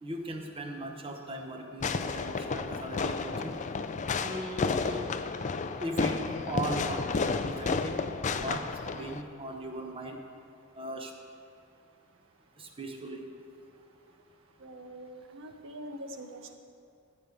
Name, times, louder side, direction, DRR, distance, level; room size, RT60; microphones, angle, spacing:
voice 1, 0.0-3.5 4.2-5.0 5.8-6.2 6.5-8.0 8.3-8.6 9.0-10.2 10.8-11.1 12.6-13.2, right 1 dB, 25° right, 3 dB, 1.0 m, -38 dB
Fireworks, 1.8-9.2, left 4 dB, 35° left, 0.4 m, -32 dB
voice 2, 14.6-16.5, right 1 dB, 65° right, 5 dB, 1.0 m, -44 dB
12.5 x 5.3 x 7.7 m, 2.6 s
head